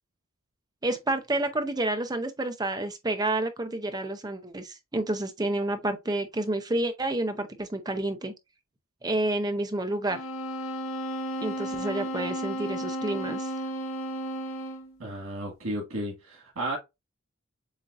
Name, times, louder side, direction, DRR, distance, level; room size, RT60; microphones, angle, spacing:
voice 1, 0.8-8.3 9.0-10.2 11.4-13.5, right 2 dB, 20° right, 0.6 m, -29 dB
sound 1, 10.1-15.0, equal, 70° left, 0.8 m, -33 dB
voice 2, 15.0-16.8, right 1 dB, 85° right, 1.5 m, -33 dB
7.1 x 2.6 x 2.4 m
head